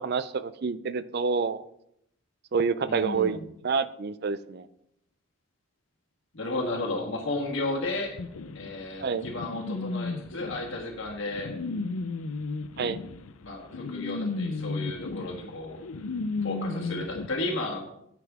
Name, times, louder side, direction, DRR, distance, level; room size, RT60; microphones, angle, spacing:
voice 1, 0.0-1.6 2.5-4.7 9.0-9.2 12.8-13.0, right 5 dB, 50° right, 14 dB, 0.4 m, -28 dB
voice 2, 2.9-3.4 6.3-8.2 8.5-11.5 13.4-15.8 16.4-17.9, left 2 dB, 60° left, 0 dB, 1.5 m, -33 dB
sound 1, 8.2-17.3, left 3 dB, 75° left, 0.5 m, -34 dB
9.3 x 7.4 x 3.6 m, 0.76 s
head